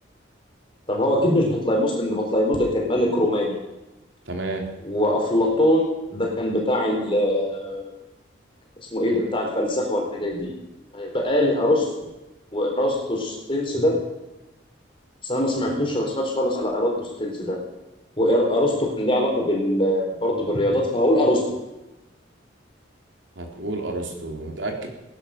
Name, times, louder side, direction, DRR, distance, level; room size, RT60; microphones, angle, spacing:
voice 1, 0.9-3.6 4.8-5.9 6.1-7.9 8.9-10.5 10.9-11.9 12.5-14.0 15.2-17.6 18.2-21.4, left 1 dB, 25° left, 0 dB, 4.2 m, -22 dB
voice 2, 4.2-4.6 23.3-24.9, right 2 dB, 85° right, 2 dB, 3.4 m, -30 dB
19.0 x 11.0 x 6.7 m, 1.0 s
head